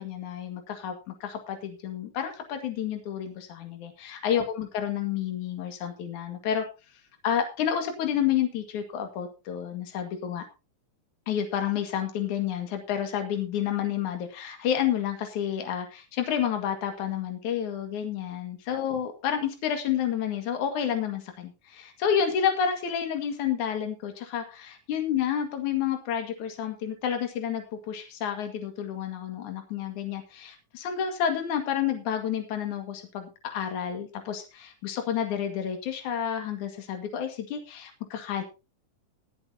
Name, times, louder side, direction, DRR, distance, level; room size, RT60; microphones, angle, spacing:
voice 1, 0.0-6.6 7.2-10.4 11.3-38.4, left 9 dB, 65° left, 5 dB, 3.2 m, -30 dB
21.0 x 7.8 x 2.8 m, 0.29 s
omnidirectional pair, 3.9 m